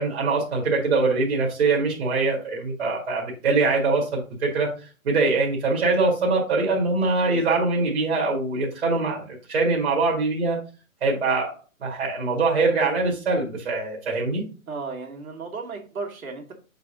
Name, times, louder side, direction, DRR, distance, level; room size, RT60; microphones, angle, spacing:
voice 1, 0.0-4.7 5.0-10.6 11.0-11.5 11.8-14.4, right 3 dB, 50° right, -3 dB, 2.0 m, -23 dB
voice 2, 7.2-7.5 14.7-16.5, right 4 dB, 80° right, 1 dB, 2.1 m, -35 dB
7.7 x 4.1 x 3.8 m, 0.35 s
hypercardioid pair, 175°, 42 cm